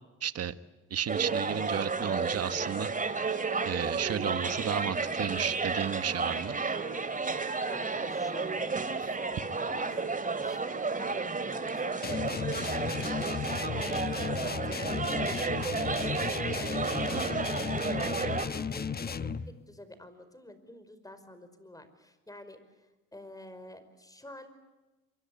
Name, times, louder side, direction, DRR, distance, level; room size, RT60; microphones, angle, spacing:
voice 1, 0.2-0.5 0.9-2.9 3.6-6.6 17.1-17.2, right 9 dB, 55° right, 12 dB, 1.5 m, -33 dB
sound 1, 1.1-18.5, right 4 dB, 25° right, 2.7 m, -32 dB
voice 2, 7.6-24.5, left 1 dB, 10° left, 11 dB, 5.2 m, -49 dB
sound 2, 12.0-19.5, left 6 dB, 30° left, 1.2 m, -34 dB
27.5 x 24.5 x 8.8 m, 1.1 s
cardioid pair, 90°, 30 cm